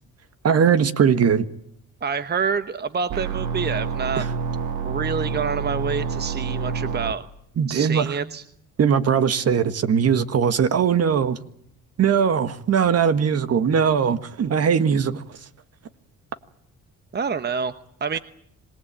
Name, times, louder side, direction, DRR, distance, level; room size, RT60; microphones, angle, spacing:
voice 1, 0.4-1.5 4.2-4.3 7.6-8.1 8.8-11.4 12.0-15.2, right 7 dB, 55° right, 1.6 m, -20 dB
voice 2, 2.0-4.2 4.8-7.2 7.7-8.4 17.1-17.7 18.0-18.2, right 6 dB, 35° right, 1.0 m, -27 dB
sound 1, 3.1-7.1, right 5 dB, 75° right, 2.4 m, -27 dB
26.5 x 19.0 x 8.9 m
cardioid pair, 90°, 30 cm